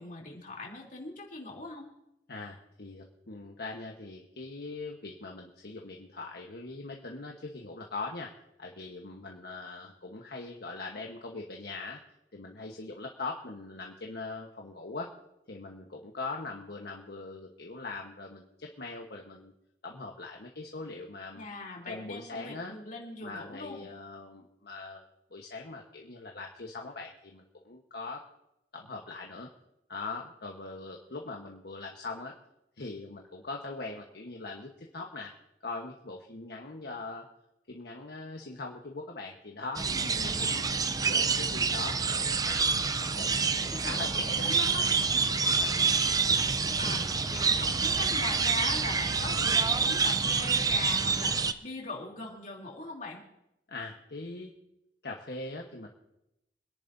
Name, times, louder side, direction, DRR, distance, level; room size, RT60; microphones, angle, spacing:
voice 1, 0.0-1.9 21.3-23.9 39.9-40.8 43.6-44.9 46.8-53.2, left 3 dB, 50° left, -2 dB, 3.1 m, -41 dB
voice 2, 2.3-12.0 12.3-15.1 15.5-19.5 19.8-21.4 21.9-22.8 23.2-25.0 25.3-28.2 28.7-29.5 29.9-32.3 32.8-35.3 35.6-37.3 37.7-40.5 41.0-42.9 43.2-44.5 45.1-45.7 53.7-54.5 55.0-55.9, left 3 dB, 65° left, 1 dB, 1.2 m, -41 dB
sound 1, 39.8-51.5, right 5 dB, 20° right, 0.5 m, -27 dB
26.0 x 10.5 x 2.7 m, 0.86 s
head